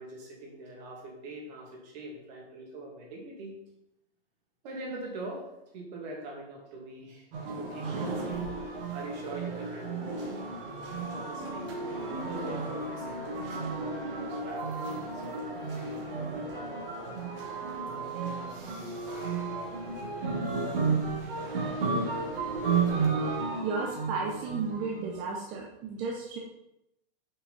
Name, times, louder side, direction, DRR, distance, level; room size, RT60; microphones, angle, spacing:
voice 1, 0.0-3.6 4.6-5.5 5.7-8.4 8.9-10.3 11.1-11.7 12.2-15.4 15.7-16.3, right 2 dB, 45° right, -1 dB, 2.1 m, -43 dB
sound 1, 7.3-25.1, right 4 dB, 65° right, 1.9 m, -33 dB
voice 2, 23.6-26.4, right 4 dB, 25° right, -1 dB, 0.6 m, -33 dB
5.9 x 5.0 x 3.9 m, 0.86 s
supercardioid pair, 155°, 30 cm